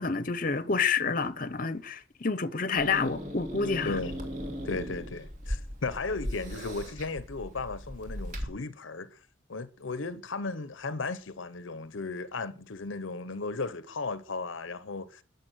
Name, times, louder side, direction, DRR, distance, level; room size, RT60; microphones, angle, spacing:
voice 1, 0.0-4.0, left 5 dB, 45° left, 0.9 m, -29 dB
Growling / Hiss, 2.7-8.4, equal, 40° right, 3.0 m, -38 dB
voice 2, 3.8-4.2 4.6-9.2 9.5-15.2, left 3 dB, 70° left, 0.8 m, -35 dB
20.0 x 7.2 x 6.3 m
head